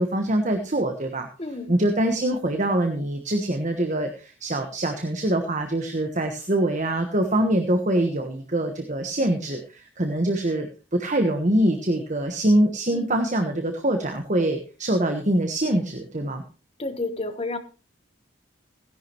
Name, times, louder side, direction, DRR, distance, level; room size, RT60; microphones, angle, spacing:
voice 1, 0.0-1.3 1.7-10.7 10.9-16.4, right 1 dB, 40° right, 1.3 m, -24 dB
voice 2, 1.4-1.7 12.9-13.2 16.8-17.6, left 2 dB, 30° left, 1.1 m, -31 dB
17.0 x 10.5 x 3.0 m
head